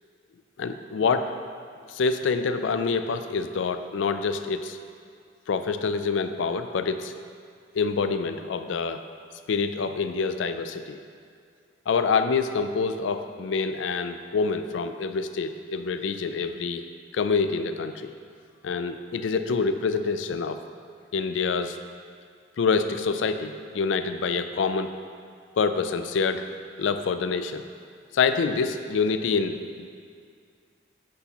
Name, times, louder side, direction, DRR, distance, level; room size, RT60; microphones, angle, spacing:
voice 1, 0.6-1.3 1.9-4.8 5.5-7.1 7.7-9.0 9.5-11.0 11.9-16.8 17.1-18.1 18.6-20.6 21.1-21.8 22.6-24.9 25.6-26.5 26.8-27.6 28.1-29.9, left 5 dB, 85° left, 9 dB, 0.4 m, -26 dB
9.7 x 5.8 x 2.9 m, 2.2 s
head